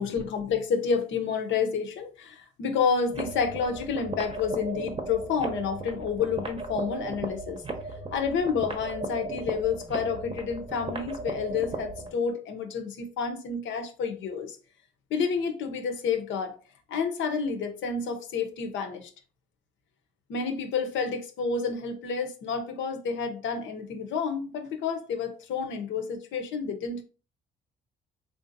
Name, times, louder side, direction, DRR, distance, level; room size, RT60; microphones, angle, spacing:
voice 1, 0.0-7.6 8.1-14.6 15.1-16.5 16.9-19.1 20.3-27.0, left 5 dB, 75° left, 0.6 m, -29 dB
sound 1, 3.1-12.1, right 2 dB, 25° right, 0.7 m, -36 dB
3.6 x 2.5 x 2.6 m
cardioid pair, 90°, 20 cm